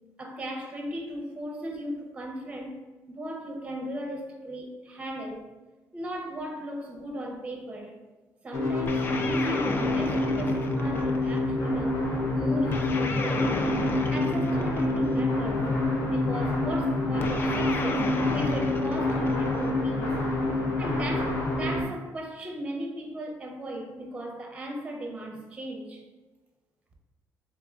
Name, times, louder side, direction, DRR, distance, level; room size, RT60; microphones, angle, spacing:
voice 1, 0.2-2.8 3.1-5.5 5.9-8.0 8.4-13.8 14.1-15.7 16.1-20.2 20.8-26.0, equal, 15° right, 2 dB, 0.7 m, -36 dB
sound 1, 8.5-21.8, left 2 dB, 60° left, 0.9 m, -27 dB
sound 2, 8.9-11.5 12.7-15.3 17.2-19.8, left 3 dB, 35° left, 0.4 m, -34 dB
3.6 x 3.3 x 3.5 m, 1.2 s
cardioid pair, 155°, 6 cm